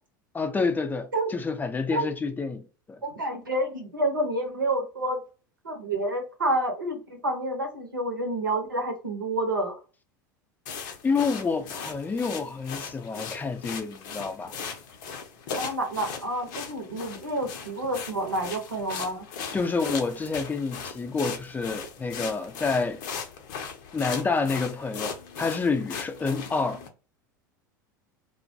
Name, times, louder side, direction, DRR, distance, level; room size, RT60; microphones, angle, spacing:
voice 1, 0.3-3.0 11.0-14.5 19.5-23.0 23.9-26.8, left 4 dB, 15° left, 0.4 m, -28 dB
voice 2, 3.0-5.2 5.6-9.8 15.6-19.2, right 1 dB, 90° right, 0.9 m, -29 dB
sound 1, 10.7-26.9, left 6 dB, 65° left, 0.6 m, -38 dB
2.3 x 2.2 x 2.7 m
hypercardioid pair, 80°, 11 cm